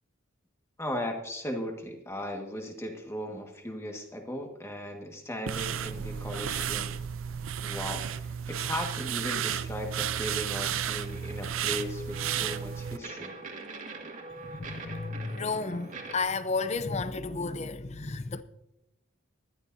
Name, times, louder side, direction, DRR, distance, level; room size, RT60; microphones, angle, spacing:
voice 1, 0.8-6.9 7.6-13.4, left 1 dB, 15° left, 1.6 m, -37 dB
sound 1, 5.5-13.0, right 9 dB, 70° right, 0.5 m, -33 dB
sound 2, 10.4-16.2, right 3 dB, 35° right, 2.0 m, -44 dB
voice 2, 14.4-18.4, left 4 dB, 30° left, 0.6 m, -32 dB
19.5 x 13.0 x 2.7 m
head